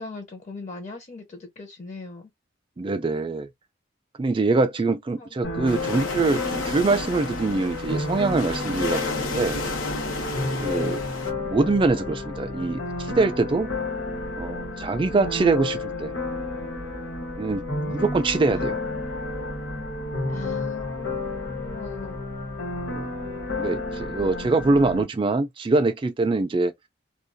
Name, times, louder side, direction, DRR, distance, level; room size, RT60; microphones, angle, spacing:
voice 1, 0.0-2.3 5.2-5.3 10.7-11.1 18.4-19.0 20.3-22.2, left 3 dB, 35° left, 0.6 m, -39 dB
voice 2, 2.8-3.5 4.2-9.6 10.6-11.0 11.4-13.7 14.4-16.1 17.4-18.8 22.9-23.1 23.6-26.7, right 3 dB, 25° right, 0.3 m, -24 dB
sound 1, 5.4-25.0, left 2 dB, 65° left, 1.1 m, -31 dB
sound 2, 5.7-11.3, left 3 dB, 80° left, 0.8 m, -32 dB
2.3 x 2.3 x 2.6 m
head